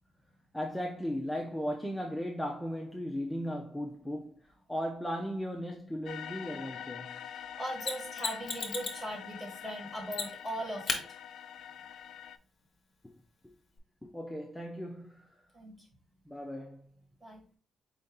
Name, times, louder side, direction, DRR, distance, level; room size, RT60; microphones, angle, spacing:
voice 1, 0.5-4.4 4.7-7.2 13.0-13.1 13.4-13.5 14.0-15.4 16.3-16.9, equal, 5° left, 0.4 m, -37 dB
sound 1, 6.1-12.4, left 9 dB, 70° left, 0.3 m, -45 dB
voice 2, 7.2-11.0 15.5-15.9 17.2-17.4, right 1 dB, 20° right, 1.7 m, -39 dB
Mechanisms, 7.8-9.1 10.1-10.5 10.9-11.0 13.8-13.9, left 4 dB, 35° left, 0.8 m, -34 dB
4.5 x 2.7 x 3.6 m
cardioid pair, 140°, 0 cm